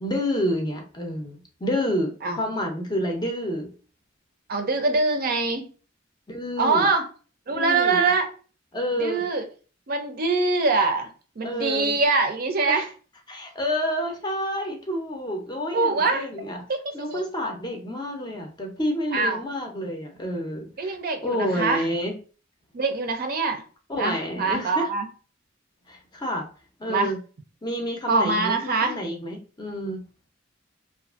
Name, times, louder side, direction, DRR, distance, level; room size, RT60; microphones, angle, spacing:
voice 1, 0.0-3.7 6.3-6.9 7.5-8.1 8.7-9.2 11.4-12.0 12.7-12.8 13.3-16.6 16.9-21.0 21.2-22.1 23.9-24.9 25.9-26.5 26.8-27.2 27.6-30.0, equal, 20° left, 2 dB, 0.5 m, -29 dB
voice 2, 4.5-5.6 6.6-7.1 7.5-8.3 8.9-9.4 9.9-11.1 11.4-12.9 15.7-16.3 16.7-17.2 19.1-19.4 20.8-21.9 22.7-23.6 24.0-25.1 26.9-27.1 28.1-28.9, right 3 dB, 50° right, 6 dB, 0.5 m, -23 dB
2.5 x 2.4 x 2.4 m, 0.37 s
head